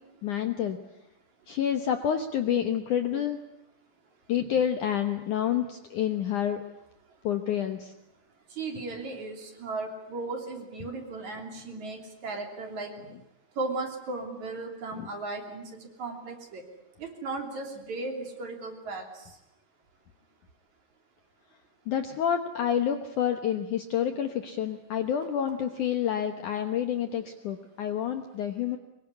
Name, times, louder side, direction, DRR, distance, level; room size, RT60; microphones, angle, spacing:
voice 1, 0.2-0.8 1.5-3.4 4.3-6.6 7.2-7.9 14.9-15.1 21.9-28.8, left 9 dB, 65° left, 7 dB, 2.1 m, -28 dB
voice 2, 8.6-13.0 13.6-15.7 16.0-16.6 17.0-19.0, right 3 dB, 45° right, 3 dB, 4.1 m, -36 dB
24.5 x 22.0 x 9.8 m, 0.89 s
omnidirectional pair, 4.9 m